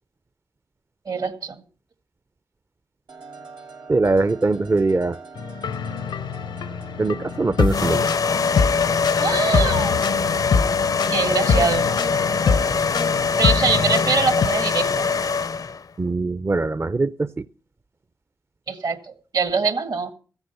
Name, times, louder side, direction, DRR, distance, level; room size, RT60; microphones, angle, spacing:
voice 1, 1.1-1.6 9.2-9.9 11.1-11.9 13.4-14.9 18.7-20.1, right 4 dB, 65° right, 9 dB, 2.0 m, -23 dB
sound 1, 3.1-12.7, right 4 dB, 85° right, 1.5 m, -43 dB
voice 2, 3.9-5.2 7.0-8.1 16.0-17.5, right 3 dB, 35° right, 13 dB, 0.5 m, -22 dB
sound 2, 5.4-14.5, left 5 dB, 85° left, 0.8 m, -25 dB
sound 3, 7.7-15.8, left 5 dB, 55° left, 0.5 m, -23 dB
14.5 x 8.1 x 6.8 m, 0.41 s
supercardioid pair, 40°, 8 cm